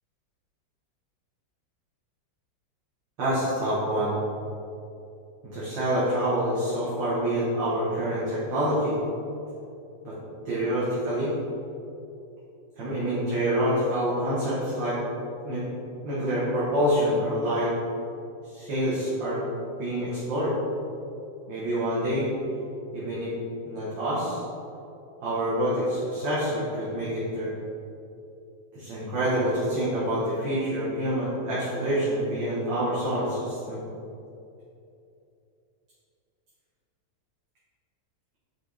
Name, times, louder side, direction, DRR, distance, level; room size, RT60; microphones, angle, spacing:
voice 1, 3.2-4.2 5.5-8.9 10.0-10.1 10.5-11.3 12.8-15.0 15.4-15.6 16.0-17.7 18.5-19.4 19.8-20.5 21.5-22.3 22.9-23.3 23.7-24.4 25.2-27.5 28.7-33.8, equal, 90° right, -10 dB, 2.1 m, -27 dB
5.6 x 5.3 x 4.1 m, 2.7 s
omnidirectional pair, 1.9 m